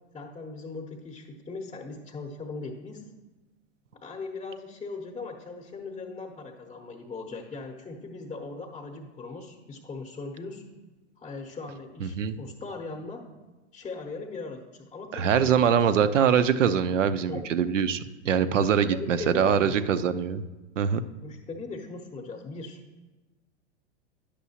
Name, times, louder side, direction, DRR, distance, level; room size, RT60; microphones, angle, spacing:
voice 1, 0.1-3.0 4.0-10.6 11.2-13.3 13.7-16.1 17.3-17.5 18.7-19.8 21.2-22.8, left 3 dB, 15° left, 2 dB, 0.7 m, -39 dB
voice 2, 12.0-12.4 15.1-20.4 20.8-21.0, right 7 dB, 85° right, 13 dB, 0.5 m, -23 dB
10.0 x 6.1 x 2.8 m, 1.2 s
hypercardioid pair, 105°, 36 cm